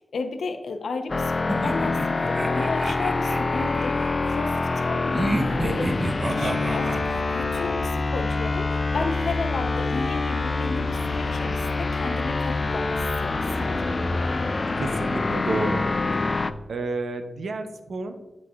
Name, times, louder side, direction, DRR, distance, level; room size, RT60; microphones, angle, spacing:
voice 1, 0.0-6.0 6.3-14.3, left 3 dB, 85° left, 7 dB, 0.6 m, -33 dB
sound 1, 1.1-16.5, left 3 dB, 45° left, 0.3 m, -26 dB
sound 2, 1.5-4.2 5.1-7.7, right 1 dB, 25° right, 0.8 m, -30 dB
sound 3, 5.0-14.3, equal, ahead, 1.9 m, -40 dB
voice 2, 13.6-14.3 14.8-15.8 16.7-18.2, right 3 dB, 80° right, 7 dB, 0.7 m, -31 dB
12.0 x 4.1 x 2.4 m, 1.2 s
cardioid pair, 70°, 0 cm